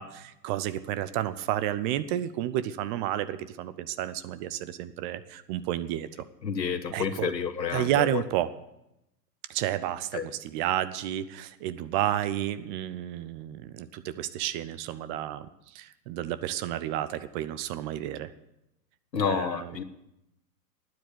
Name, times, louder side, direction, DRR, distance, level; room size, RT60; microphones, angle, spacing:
voice 1, 0.0-6.1 6.9-7.3 7.7-8.5 9.5-15.5 15.7-18.3 19.1-19.8, right 12 dB, 30° right, 14 dB, 0.7 m, -31 dB
voice 2, 6.4-8.2 10.1-10.3 19.1-19.8, left 7 dB, 85° left, 11 dB, 1.4 m, -29 dB
12.0 x 9.6 x 8.5 m, 0.86 s
hypercardioid pair, 115°, 49 cm